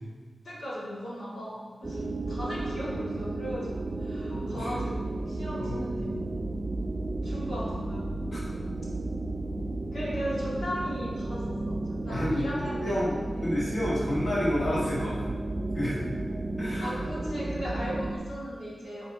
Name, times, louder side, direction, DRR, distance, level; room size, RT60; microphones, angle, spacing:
voice 1, 0.4-6.2 7.2-8.4 9.9-13.6 16.8-19.1, equal, 75° left, -7 dB, 2.2 m, -37 dB
sound 1, 1.8-18.2, right 2 dB, 30° right, 0.5 m, -33 dB
voice 2, 4.3-4.7 5.6-5.8 8.3-8.4 12.1-12.5 12.8-13.1 13.4-15.3 15.7-16.0 16.6-17.0, left 1 dB, 35° left, -7 dB, 1.4 m, -30 dB
8.5 x 4.7 x 3.4 m, 1.4 s
wide cardioid pair, 130°, 0 cm